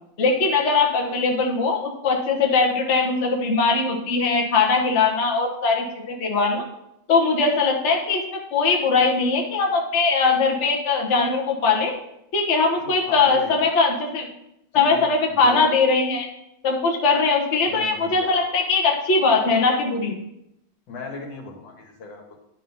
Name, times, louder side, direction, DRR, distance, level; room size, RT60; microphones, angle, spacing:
voice 1, 0.2-6.6 7.1-11.9 12.3-14.3 14.7-16.3 16.6-20.2, left 4 dB, 45° left, 1 dB, 1.3 m, -21 dB
voice 2, 12.8-13.9 14.7-15.7 17.6-18.7 20.9-22.4, left 3 dB, 85° left, 2 dB, 2.0 m, -38 dB
10.0 x 3.7 x 5.5 m, 0.81 s
omnidirectional pair, 2.0 m